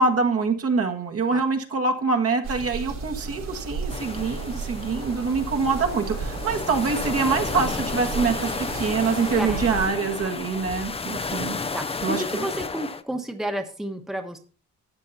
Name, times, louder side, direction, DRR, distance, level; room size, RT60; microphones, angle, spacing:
voice 1, 0.0-11.5 12.0-12.4, right 4 dB, 50° right, 4 dB, 1.6 m, -25 dB
sound 1, 2.4-9.9, right 4 dB, 75° right, 5.3 m, -33 dB
sound 2, 3.9-13.0, left 4 dB, 20° left, 0.6 m, -32 dB
voice 2, 11.7-14.4, right 1 dB, ahead, 5 dB, 1.2 m, -31 dB
13.5 x 8.5 x 2.8 m, 0.39 s
cardioid pair, 90°, 30 cm